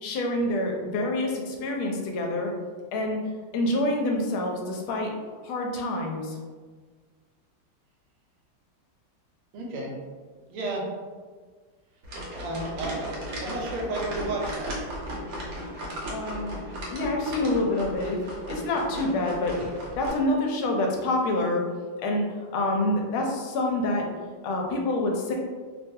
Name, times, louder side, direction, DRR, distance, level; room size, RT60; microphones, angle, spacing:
voice 1, 0.0-2.5 2.9-3.2 3.5-5.1 5.4-6.4 16.1-16.5 16.9-19.6 20.0-21.6 22.0-22.3 22.5-24.1 24.4-25.3, left 1 dB, 80° left, 1 dB, 1.4 m, -27 dB
voice 2, 9.5-9.9 10.5-10.9 12.3-13.1 13.4-14.7, right 2 dB, 85° right, -1 dB, 1.5 m, -32 dB
sound 1, 12.0-20.1, equal, 65° right, 1.2 m, -36 dB
3.5 x 2.3 x 2.6 m, 1.5 s
omnidirectional pair, 2.3 m